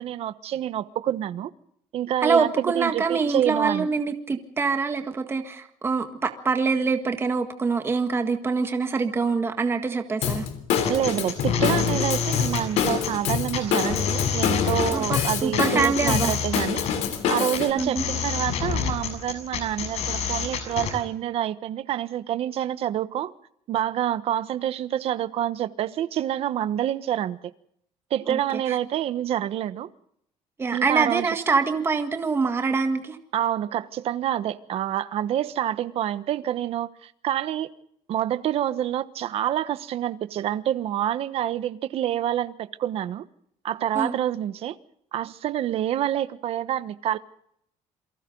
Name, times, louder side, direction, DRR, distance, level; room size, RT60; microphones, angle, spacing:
voice 1, 0.0-1.5 1.9-3.9 10.9-16.8 17.3-23.3 23.7-27.5 28.1-29.9 30.7-31.3 33.3-37.7 38.1-43.2 43.6-44.8 45.1-47.2, right 11 dB, 55° right, 1.2 m, -27 dB
voice 2, 2.2-10.5 14.9-16.3 17.8-18.0 28.3-28.8 30.6-33.2 43.9-44.2, right 4 dB, 20° right, 1.8 m, -25 dB
Drum kit / Drum, 10.2-17.7, left 8 dB, 80° left, 3.6 m, -27 dB
sound 1, 10.8-20.9, left 7 dB, 65° left, 7.0 m, -28 dB
29.0 x 23.5 x 3.9 m
cardioid pair, 160°, 12 cm